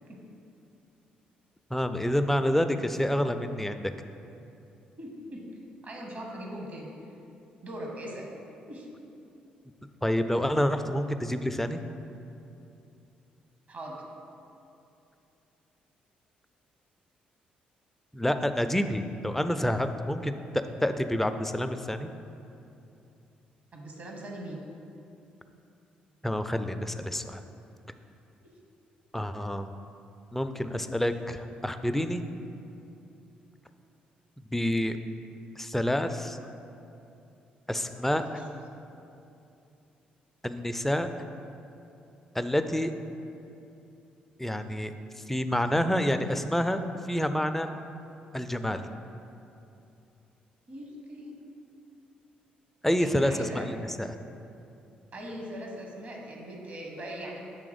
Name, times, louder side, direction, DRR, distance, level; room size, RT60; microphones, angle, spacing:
voice 1, 1.7-3.9 10.0-11.8 18.1-22.1 26.2-27.4 29.1-29.7 30.3-32.2 34.5-35.0 35.6-36.4 37.7-38.4 40.4-41.1 42.3-42.9 44.4-44.9 45.3-46.8 47.1-47.7 48.3-48.8 52.8-54.1, equal, 5° left, 8 dB, 0.4 m, -28 dB
voice 2, 5.0-5.5 5.8-6.9 7.6-8.3 8.7-8.9 13.7-14.0 23.7-24.6 28.4-28.5 38.1-38.4 50.7-51.4 53.0-53.7 55.1-57.4, right 1 dB, 50° right, 0 dB, 1.0 m, -40 dB
6.9 x 3.5 x 5.0 m, 2.7 s
hypercardioid pair, 45°, 4 cm